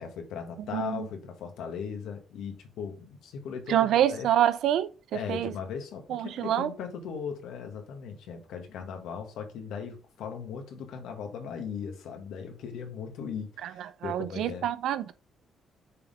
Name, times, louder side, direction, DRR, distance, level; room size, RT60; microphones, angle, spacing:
voice 1, 0.0-4.3 5.1-14.7, left 6 dB, 85° left, 1.7 m, -38 dB
voice 2, 0.7-1.1 3.7-5.5 6.1-6.7 13.6-13.7 14.0-15.1, right 11 dB, 80° right, 0.5 m, -26 dB
6.7 x 3.6 x 5.0 m
cardioid pair, 90°, 0 cm